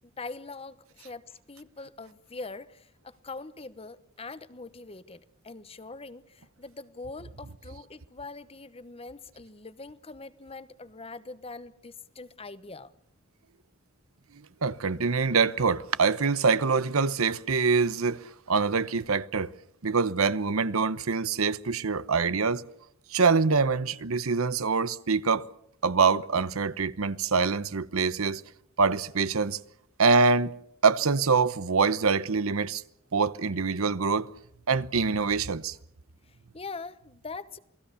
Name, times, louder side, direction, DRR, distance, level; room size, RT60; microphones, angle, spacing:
voice 1, 0.0-1.2 1.5-12.9 36.2-37.6, left 3 dB, 25° left, 1.0 m, -43 dB
voice 2, 14.6-18.2 18.5-19.5 19.8-22.6 23.1-25.5 25.8-28.4 28.8-29.6 30.0-30.5 30.8-32.8 33.1-34.3 34.7-35.7, right 4 dB, 85° right, 0.9 m, -25 dB
28.0 x 19.0 x 6.9 m
head